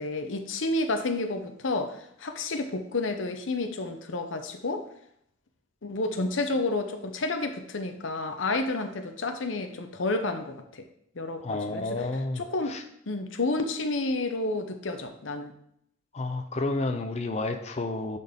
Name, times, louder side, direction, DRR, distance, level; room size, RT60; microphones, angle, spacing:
voice 1, 0.0-4.8 5.8-10.9 11.2-11.8 12.4-12.8 13.1-15.5, left 2 dB, 80° left, 7 dB, 0.8 m, -30 dB
voice 2, 11.4-12.8 16.1-18.2, left 2 dB, 35° left, 5 dB, 0.5 m, -31 dB
10.5 x 4.2 x 3.6 m, 0.72 s
head